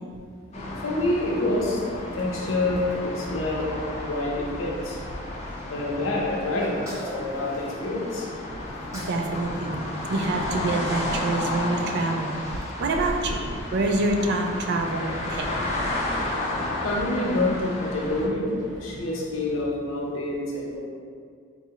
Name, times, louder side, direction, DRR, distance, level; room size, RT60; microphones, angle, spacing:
sound 1, 0.5-18.3, left 1 dB, 35° left, 0.5 m, -32 dB
voice 1, 0.8-3.8 4.1-5.0 5.7-6.8 7.1-8.3 16.8-20.8, left 2 dB, 85° left, -3 dB, 0.7 m, -27 dB
sound 2, 2.1-19.7, equal, 75° right, 0.9 m, -47 dB
Sneeze, 6.6-8.2 8.7-9.3 9.5-11.0, equal, 15° right, 0.6 m, -43 dB
voice 2, 8.9-9.8 10.1-12.3 12.8-13.4 13.7-15.5, right 2 dB, 60° right, 3 dB, 0.4 m, -26 dB
4.0 x 2.3 x 2.8 m, 2.1 s
head